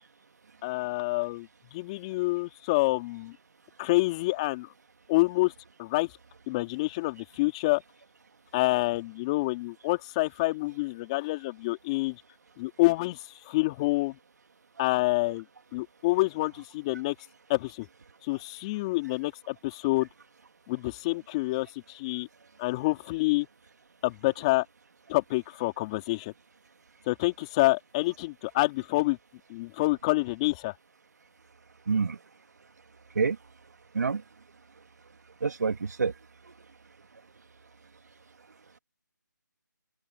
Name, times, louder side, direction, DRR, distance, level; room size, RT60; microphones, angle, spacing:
voice 1, 0.6-3.4 3.8-4.7 5.1-5.5 5.8-6.1 6.5-7.8 8.5-12.2 12.6-14.2 14.8-15.4 15.7-17.1 17.5-17.9 18.2-20.1 20.7-22.3 22.6-23.5 24.0-24.6 25.1-26.3 27.1-29.2 29.5-30.7, left 21 dB, 20° left, 3.1 m, -27 dB
voice 2, 31.9-32.2 33.2-33.4 33.9-34.2 35.4-36.1, right 5 dB, 60° right, 2.6 m, -27 dB
figure-of-eight pair, 165°, 10 cm